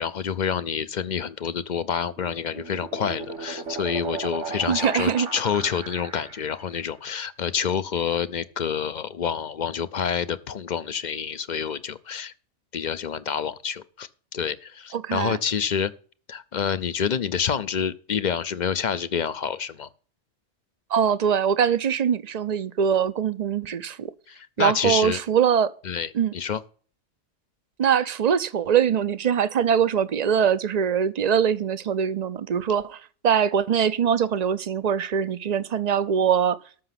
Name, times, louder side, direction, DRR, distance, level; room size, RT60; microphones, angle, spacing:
voice 1, 0.0-12.3 12.7-15.9 16.3-19.9 24.3-25.2 25.8-26.6, left 7 dB, 50° left, 0.6 m, -28 dB
sound 1, 1.9-6.7, right 5 dB, 85° right, 1.9 m, -36 dB
voice 2, 4.7-5.3 14.9-15.4 20.9-24.1 24.6-25.7 26.1-26.3 27.8-33.0 33.2-36.6, right 8 dB, 45° right, 0.6 m, -22 dB
13.5 x 5.9 x 5.8 m
omnidirectional pair, 1.2 m